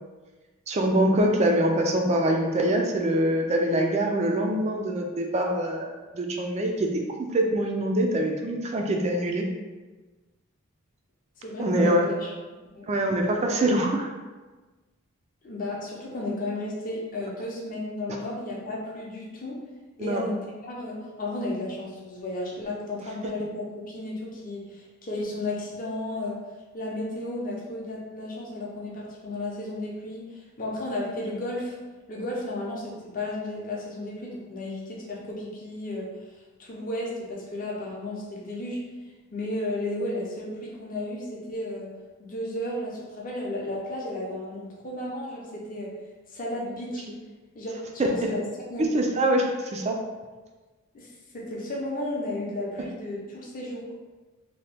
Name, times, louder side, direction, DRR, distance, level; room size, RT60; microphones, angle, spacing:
voice 1, 0.7-7.0 7.3-9.5 11.6-12.1 12.9-14.1 20.0-20.2 48.0-48.1 48.8-50.0, right 1 dB, 30° right, 2 dB, 0.3 m, -24 dB
voice 2, 11.4-12.3 12.7-12.9 15.4-19.6 20.0-26.4 26.7-31.8 32.1-38.8 39.3-41.9 42.2-45.9 46.3-47.1 47.5-47.7 48.0-48.4 48.7-48.8 50.9-53.9, left 1 dB, 40° left, -3 dB, 0.6 m, -33 dB
2.8 x 2.2 x 3.3 m, 1.3 s
head